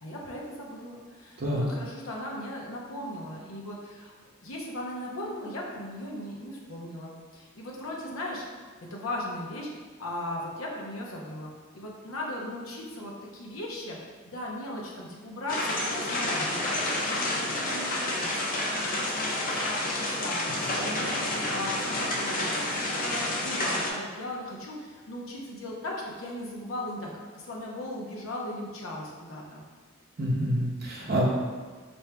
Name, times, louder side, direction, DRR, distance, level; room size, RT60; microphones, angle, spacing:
voice 1, 0.0-4.1 4.4-8.5 8.8-9.7 10.0-14.0 14.3-20.4 20.8-29.6, left 1 dB, 75° left, -2 dB, 0.7 m, -38 dB
voice 2, 1.4-1.7 30.2-31.2, equal, 45° right, -4 dB, 0.6 m, -27 dB
sound 1, 15.5-23.9, left 1 dB, 40° left, 0.5 m, -29 dB
4.5 x 2.6 x 3.3 m, 1.5 s
head